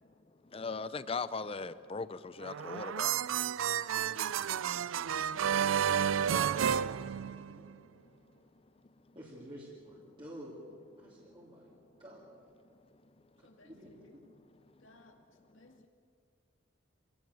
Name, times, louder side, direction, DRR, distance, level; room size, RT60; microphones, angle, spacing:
voice 1, 0.5-3.1, left 4 dB, 30° left, 0.6 m, -38 dB
sound 1, 2.4-7.7, right 8 dB, 90° right, 0.4 m, -31 dB
voice 2, 3.9-4.9 6.1-7.6 9.1-10.6 11.0-11.7 12.0-12.4 13.4-14.2, right 1 dB, 25° right, 2.8 m, -51 dB
voice 3, 13.4-14.2 14.7-15.9, left 2 dB, 80° left, 2.4 m, -61 dB
26.5 x 17.0 x 7.0 m
head